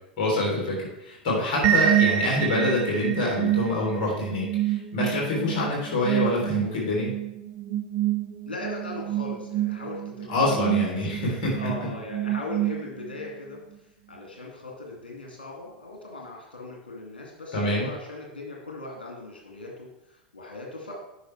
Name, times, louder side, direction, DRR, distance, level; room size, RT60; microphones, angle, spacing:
voice 1, 0.2-7.1 10.3-11.6 17.5-17.9, left 2 dB, 50° left, -3 dB, 3.2 m, -26 dB
sound 1, 1.6-13.3, right 12 dB, 45° right, 0.8 m, -27 dB
voice 2, 8.4-13.6 14.1-20.9, left 2 dB, 75° left, -1 dB, 2.3 m, -39 dB
9.5 x 5.8 x 3.3 m, 0.86 s
figure-of-eight pair, 90°, 5 cm